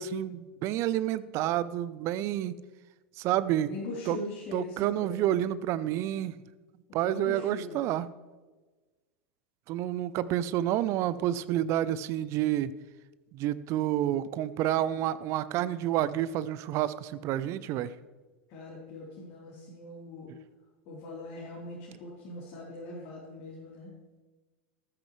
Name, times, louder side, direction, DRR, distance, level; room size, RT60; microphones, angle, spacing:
voice 1, 0.0-2.5 3.2-3.7 4.1-4.2 4.5-6.4 6.9-8.1 9.7-12.7 13.3-17.9, right 12 dB, 45° right, 16 dB, 0.6 m, -29 dB
voice 2, 3.6-5.3 6.9-7.8 18.5-20.3 20.9-23.9, left 2 dB, 50° left, -5 dB, 3.6 m, -41 dB
14.0 x 13.0 x 3.2 m, 1.3 s
figure-of-eight pair, 85°, 7 cm